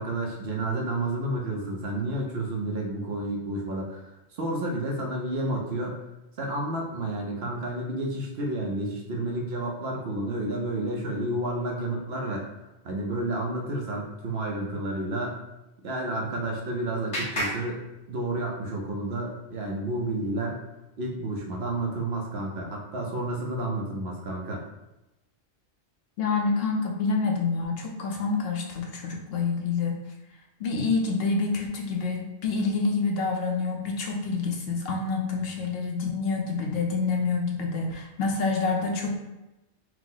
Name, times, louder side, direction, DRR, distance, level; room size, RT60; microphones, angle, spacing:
voice 1, 0.0-6.0 6.4-12.5 12.8-15.4 15.8-20.6 21.0-24.7, right 1 dB, 65° right, -1 dB, 1.0 m, -30 dB
Clapping, 16.0-18.6, equal, 80° left, 1.4 m, -36 dB
voice 2, 26.2-30.0 30.6-39.2, left 4 dB, 65° left, 1 dB, 0.8 m, -27 dB
4.6 x 2.0 x 3.8 m, 0.96 s
omnidirectional pair, 1.2 m